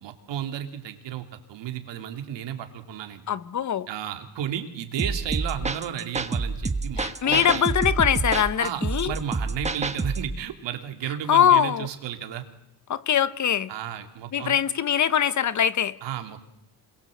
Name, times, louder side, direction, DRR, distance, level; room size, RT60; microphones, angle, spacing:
voice 1, 0.0-3.2 3.9-7.7 8.6-12.4 13.7-14.6 16.0-16.5, right 9 dB, 85° right, 3.3 m, -33 dB
voice 2, 3.3-3.9 7.0-9.1 11.3-11.9 12.9-13.7 14.3-16.0, left 9 dB, 40° left, 1.1 m, -22 dB
sound 1, 5.0-10.3, right 3 dB, 15° right, 1.4 m, -28 dB
27.5 x 22.0 x 7.9 m
cardioid pair, 140°, 42 cm